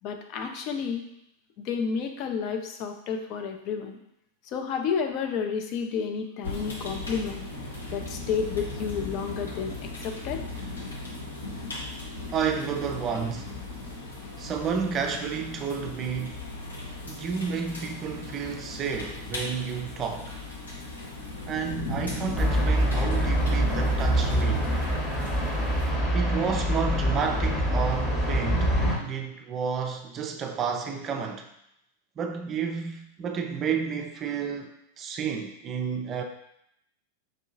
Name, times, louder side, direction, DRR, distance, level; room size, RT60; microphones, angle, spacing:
voice 1, 0.0-1.0 1.6-4.0 4.5-7.4 7.9-10.4, left 6 dB, 40° left, 4 dB, 0.5 m, -31 dB
sound 1, 6.4-25.9, left 2 dB, 75° left, 0.9 m, -37 dB
voice 2, 12.3-13.5 14.4-16.4 17.1-20.4 21.5-24.7 26.1-28.7 29.0-31.5 32.2-36.2, right 6 dB, 30° right, 4 dB, 0.4 m, -31 dB
sound 2, 22.3-29.0, right 1 dB, 20° left, 1.0 m, -25 dB
5.2 x 2.7 x 2.6 m, 0.77 s
figure-of-eight pair, 90°, 0 cm